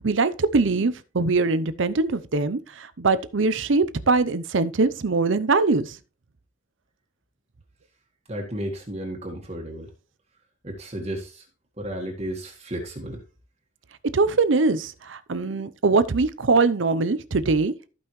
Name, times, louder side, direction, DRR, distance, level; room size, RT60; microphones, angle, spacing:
voice 1, 0.0-6.0 14.1-17.7, right 3 dB, 70° right, 0.7 m, -22 dB
voice 2, 8.3-9.9 10.6-11.5 11.8-13.2, right 1 dB, 30° right, 1.6 m, -33 dB
14.5 x 5.4 x 3.1 m
head